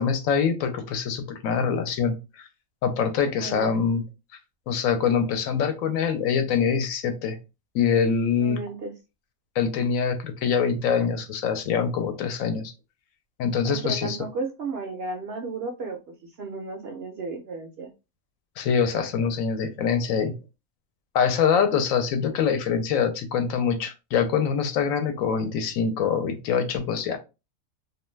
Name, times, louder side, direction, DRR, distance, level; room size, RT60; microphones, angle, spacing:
voice 1, 0.0-2.5 2.8-4.0 4.7-7.4 7.7-8.6 9.6-12.7 13.4-14.2 18.6-20.3 21.1-27.2, left 6 dB, 75° left, 7 dB, 1.0 m, -24 dB
voice 2, 3.3-3.8 8.4-8.9 13.6-17.9, right 3 dB, 65° right, 3 dB, 0.6 m, -34 dB
2.5 x 2.2 x 3.1 m, 0.27 s
omnidirectional pair, 1.4 m